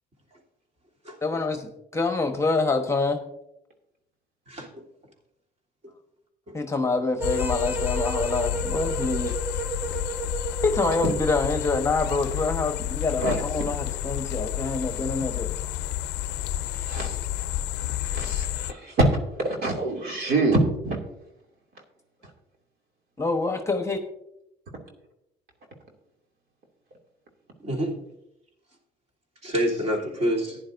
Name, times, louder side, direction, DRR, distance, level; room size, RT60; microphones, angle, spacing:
voice 1, 1.2-3.2 6.5-9.3 10.6-15.5 23.2-24.0, left 3 dB, 15° left, 1.1 m, -26 dB
voice 2, 4.5-4.8 6.5-6.6 27.6-28.0 29.4-30.6, equal, 40° right, 3.2 m, -27 dB
sound 1, 7.2-18.7, left 13 dB, 80° left, 0.5 m, -30 dB
sound 2, 7.2-11.5, right 4 dB, 15° right, 0.9 m, -33 dB
voice 3, 16.7-17.2 17.7-19.1 19.4-21.0, right 2 dB, 65° right, 2.6 m, -25 dB
14.5 x 10.5 x 2.6 m
cardioid pair, 110°, 17 cm